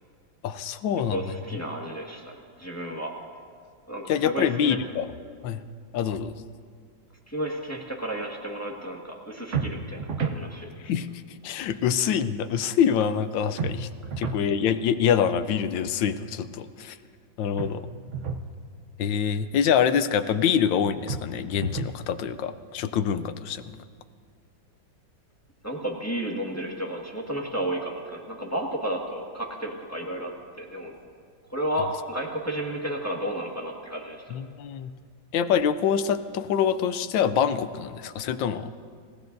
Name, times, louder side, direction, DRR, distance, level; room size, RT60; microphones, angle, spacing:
voice 1, 0.4-1.3 4.1-5.1 5.4-5.6 5.9-6.3 10.8-11.1 11.4-13.9 14.2-17.0 17.4-17.8 19.0-23.6 34.3-34.9 35.3-38.7, left 8 dB, 75° left, 11 dB, 1.3 m, -25 dB
voice 2, 1.1-3.1 3.9-4.8 7.3-10.7 25.6-30.3 30.6-30.9 31.5-34.2, right 1 dB, 10° left, -1 dB, 1.5 m, -32 dB
sound 1, 9.5-10.4 13.6-14.5 17.6-18.5 21.1-22.0, right 5 dB, 55° right, 0.8 m, -31 dB
27.5 x 16.0 x 2.7 m, 2.2 s
omnidirectional pair, 2.1 m